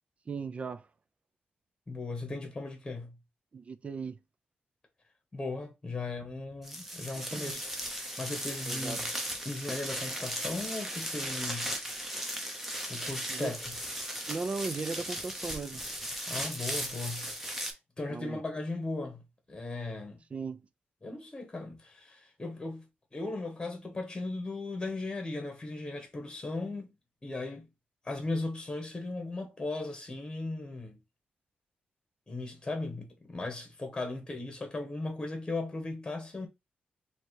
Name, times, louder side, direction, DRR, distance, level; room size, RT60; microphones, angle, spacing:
voice 1, 0.3-0.9 3.5-4.2 7.3-7.6 8.7-9.0 13.3-13.5 14.3-15.8 18.1-18.4 20.3-20.7, right 4 dB, 40° right, 0.5 m, -37 dB
voice 2, 1.9-3.2 5.3-7.7 8.2-9.1 9.4-11.9 12.8-13.6 16.3-17.3 17.6-19.2 19.5-20.2 21.0-22.8 23.1-26.9 27.2-27.7 28.0-31.0 32.3-36.5, left 2 dB, 20° left, 1.2 m, -37 dB
sound 1, 6.6-17.7, equal, 5° right, 0.9 m, -37 dB
3.2 x 2.9 x 4.6 m
wide cardioid pair, 125°, 3 cm